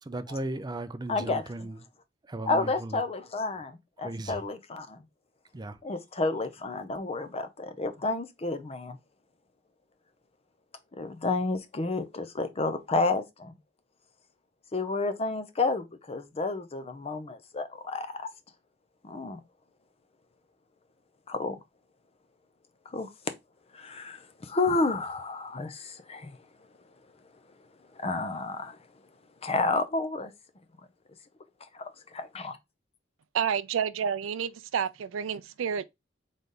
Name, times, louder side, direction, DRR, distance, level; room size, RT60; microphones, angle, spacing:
voice 1, 0.0-1.8 2.3-3.0 4.0-4.5 5.5-5.8, right 2 dB, 20° right, 0.4 m, -36 dB
voice 2, 1.1-1.4 2.4-5.0 5.8-9.0 10.9-13.6 14.7-18.3 19.0-19.4 21.3-21.6 22.9-23.1 23.7-26.4 27.9-28.8 29.4-30.3 31.6-32.6, left 3 dB, 30° left, 0.6 m, -31 dB
voice 3, 33.3-35.8, right 7 dB, 85° right, 0.4 m, -29 dB
4.0 x 3.3 x 3.8 m
head